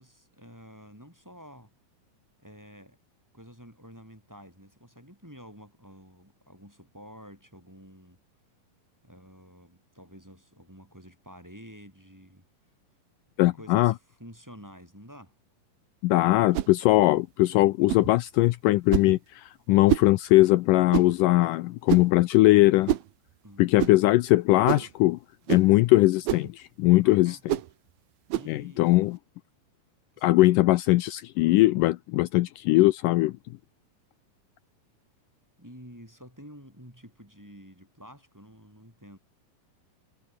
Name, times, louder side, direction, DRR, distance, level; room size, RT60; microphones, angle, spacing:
voice 1, 0.0-1.7 2.4-3.0 3.3-8.2 9.0-12.4 13.5-15.3 23.4-24.2 27.0-27.4 28.3-28.9 30.1-30.7 35.6-39.2, equal, 5° right, 6.2 m, -49 dB
voice 2, 13.4-13.9 16.0-22.9 23.6-25.2 25.5-27.4 28.5-29.2 30.2-33.3, left 18 dB, 80° left, 2.0 m, -21 dB
sound 1, 16.5-16.8 17.9-18.1 18.9-19.2 19.9-20.1 20.9-21.2 21.9-22.2 22.9-23.1 23.8-24.0 24.7-24.9 25.5-25.7 26.3-26.5 27.5-27.7 28.3-28.5, right 14 dB, 80° right, 3.0 m, -27 dB
omnidirectional pair, 4.3 m